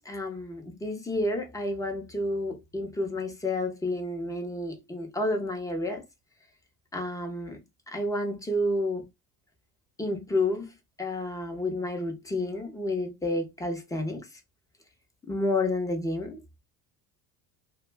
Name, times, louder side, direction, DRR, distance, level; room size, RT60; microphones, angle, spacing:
voice 1, 0.0-6.0 6.9-7.6 7.9-9.0 10.0-14.3 15.3-16.4, left 1 dB, 10° left, 0.4 m, -30 dB
2.3 x 2.1 x 3.2 m
cardioid pair, 135°, 40 cm